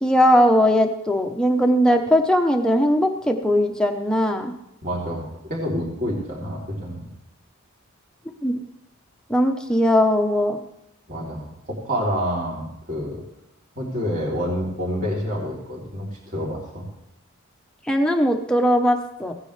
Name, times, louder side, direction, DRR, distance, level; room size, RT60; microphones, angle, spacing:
voice 1, 0.0-4.5 8.4-8.6 9.3-10.6 17.9-19.3, equal, 5° left, 3 dB, 1.0 m, -19 dB
voice 2, 4.8-7.1 11.1-13.2 13.7-16.9, equal, 40° right, -3 dB, 3.4 m, -28 dB
16.5 x 9.9 x 3.3 m, 0.89 s
head